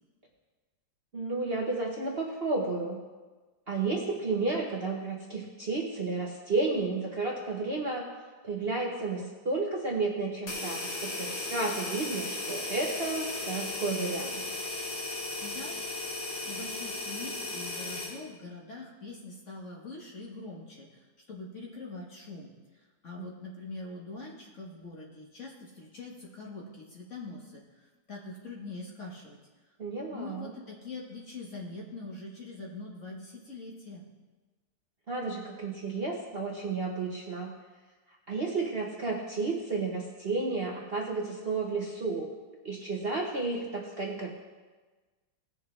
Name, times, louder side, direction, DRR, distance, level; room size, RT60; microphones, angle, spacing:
voice 1, 1.1-3.0 3.7-8.1 8.4-14.6 23.2-23.3 29.8-30.5 35.1-37.5 38.3-42.3 42.6-44.3, right 3 dB, 40° right, -3 dB, 1.1 m, -32 dB
sound 1, 10.5-18.2, left 2 dB, 65° left, 2.4 m, -36 dB
voice 2, 15.4-22.5 23.0-29.4 30.1-34.0, left 3 dB, 40° left, -2 dB, 1.6 m, -43 dB
18.0 x 6.8 x 3.3 m, 1.3 s
omnidirectional pair, 2.1 m